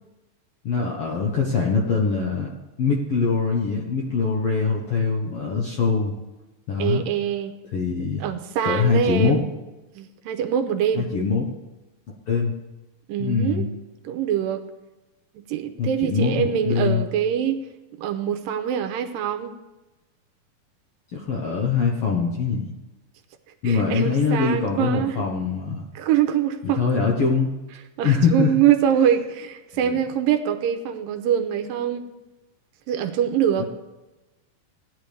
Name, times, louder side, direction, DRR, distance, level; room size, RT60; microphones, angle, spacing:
voice 1, 0.6-2.5 2.8-6.1 6.7-7.0 7.7-8.2 8.6-9.4 10.9-11.5 12.3-12.5 13.2-13.7 15.8-17.0 21.1-22.7 23.6-25.8 26.6-27.5 28.0-28.5 29.7-30.0 33.6-33.7, left 5 dB, 65° left, -1 dB, 1.5 m, -23 dB
voice 2, 6.8-7.5 8.0-9.5 10.0-11.1 13.1-13.7 14.1-14.6 15.4-17.7 18.0-19.5 23.6-25.3 26.0-26.8 28.0-32.1 32.9-33.7, right 9 dB, 80° right, 6 dB, 2.4 m, -24 dB
17.0 x 10.5 x 3.4 m, 1.1 s
omnidirectional pair, 4.2 m